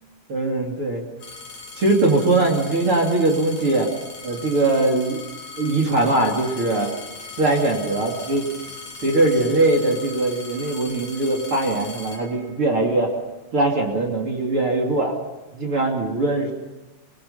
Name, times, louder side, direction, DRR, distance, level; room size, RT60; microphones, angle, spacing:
voice 1, 0.3-1.0 1.8-3.9 4.2-5.2 5.6-6.9 7.4-8.4 9.0-13.1 13.5-15.1 15.5-16.5, right 2 dB, 35° right, 3 dB, 2.8 m, -21 dB
sound 1, 1.2-12.9 13.7-14.2, left 4 dB, 45° left, 4.1 m, -39 dB
28.5 x 19.5 x 5.7 m, 1.1 s
omnidirectional pair, 5.8 m